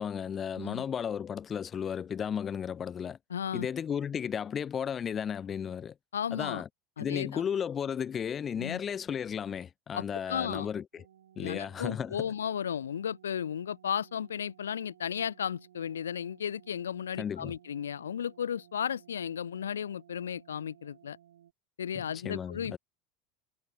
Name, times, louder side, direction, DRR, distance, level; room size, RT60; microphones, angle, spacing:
voice 1, 0.0-3.2 3.5-5.9 6.3-6.7 7.0-11.0 11.4-12.3 17.2-17.5 21.9-22.8, left 8 dB, 35° left, 1.3 m, -34 dB
voice 2, 0.5-0.8 3.3-3.7 6.1-6.6 7.0-7.4 8.6-8.8 9.9-10.7 11.4-21.2 21.8-22.8, left 8 dB, 90° left, 1.3 m, -34 dB
sound 1, 10.9-21.5, right 11 dB, 85° right, 7.2 m, -59 dB
hypercardioid pair, 85°, 0 cm